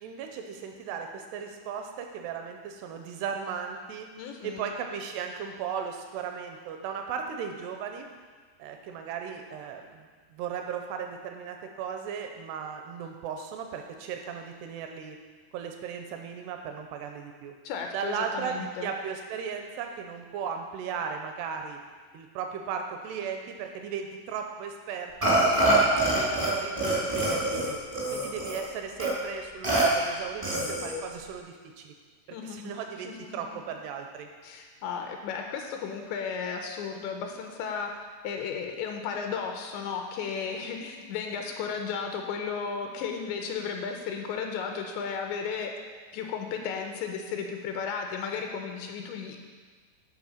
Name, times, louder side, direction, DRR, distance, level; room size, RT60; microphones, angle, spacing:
voice 1, 0.0-4.1 4.4-8.1 8.6-15.2 15.5-17.5 17.9-21.8 22.1-27.8 28.1-31.9 32.3-34.3, right 7 dB, 85° right, 4 dB, 2.4 m, -36 dB
voice 2, 4.2-4.7 17.6-18.9 25.5-25.9 32.3-32.7 33.0-33.4 34.4-37.9 38.2-45.7 46.1-49.4, left 6 dB, 80° left, 3 dB, 2.9 m, -34 dB
Burping eructation, 25.2-26.5 26.8-28.6 29.0-29.1 29.6-29.8 30.4-31.0, right 2 dB, 55° right, 0.3 m, -25 dB
11.5 x 4.3 x 6.4 m, 1.5 s
omnidirectional pair, 5.3 m